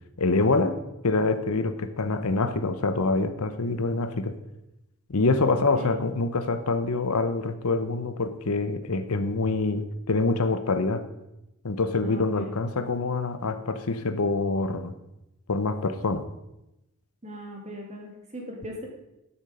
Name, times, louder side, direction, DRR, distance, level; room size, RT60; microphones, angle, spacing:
voice 1, 0.2-0.8 1.0-4.3 5.1-11.0 11.6-14.9 15.5-16.2, left 3 dB, 75° left, 11 dB, 0.9 m, -25 dB
voice 2, 5.5-5.9 12.0-12.5 17.2-18.9, equal, 30° right, 1 dB, 2.3 m, -39 dB
12.0 x 7.3 x 5.0 m, 0.90 s
head